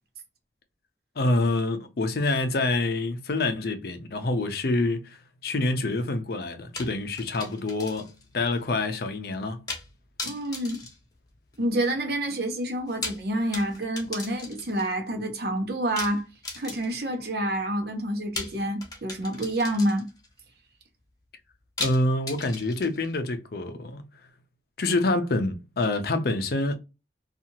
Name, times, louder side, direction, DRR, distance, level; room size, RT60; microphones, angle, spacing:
voice 1, 1.2-9.6 21.8-24.0 24.8-26.7, left 2 dB, 60° left, 0.5 m, -27 dB
sound 1, 6.8-8.3 8.6-8.7 9.7-9.9 10.2-11.7 12.8-14.9 16.0-17.1 18.4-20.3 21.8-23.2, left 3 dB, 20° left, 0.8 m, -37 dB
voice 2, 10.2-10.8 11.6-16.3 16.6-20.1, right 1 dB, 60° right, 0.8 m, -28 dB
2.7 x 2.4 x 2.7 m
head